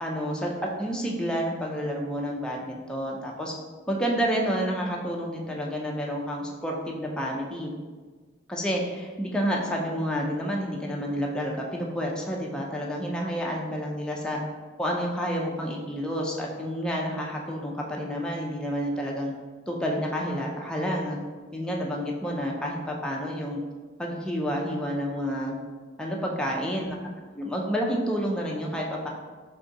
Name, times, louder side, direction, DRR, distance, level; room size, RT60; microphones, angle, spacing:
voice 1, 0.0-3.5 3.9-7.7 8.5-14.4 14.8-19.3 19.7-21.2 21.5-23.6 24.0-25.6 26.0-27.0 27.3-29.1, equal, 5° left, -2 dB, 0.4 m, -29 dB
3.7 x 2.6 x 3.9 m, 1.4 s
head